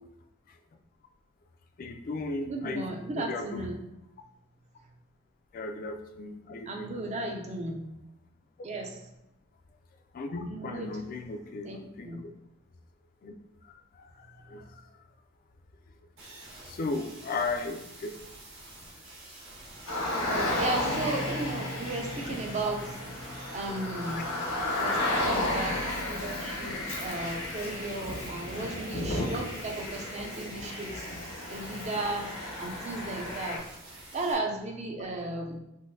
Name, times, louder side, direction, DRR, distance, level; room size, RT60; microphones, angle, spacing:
voice 1, 1.8-2.8 3.1-3.7 5.5-6.9 10.1-11.7 12.0-12.2 13.2-13.3 14.0-14.8 16.7-18.1 24.6-25.0 26.0-26.2, left 3 dB, 40° left, 5 dB, 0.3 m, -36 dB
voice 2, 2.4-3.8 6.7-7.8 8.6-9.0 10.5-11.0 11.6-11.8 12.0-12.2 20.2-23.0 23.5-24.2 24.8-31.1 31.5-32.3 32.6-33.7 34.1-35.6, right 2 dB, 35° right, 2 dB, 0.4 m, -35 dB
sound 1, 16.2-34.3, right 2 dB, 70° right, 1.1 m, -48 dB
Car, 19.9-33.6, left 1 dB, 90° left, 0.9 m, -33 dB
3.8 x 2.6 x 2.6 m, 0.90 s
head